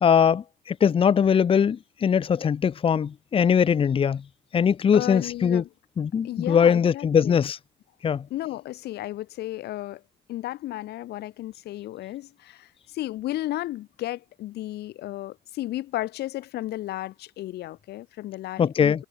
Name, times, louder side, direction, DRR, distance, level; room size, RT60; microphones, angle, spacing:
voice 1, 0.0-4.2 4.5-5.6 6.0-7.6 8.0-8.3 18.6-19.0, left 7 dB, 35° left, 0.8 m, -21 dB
voice 2, 4.9-5.7 6.2-7.4 8.3-10.0 10.3-19.0, left 15 dB, 75° left, 3.2 m, -34 dB
cardioid pair, 110°, 17 cm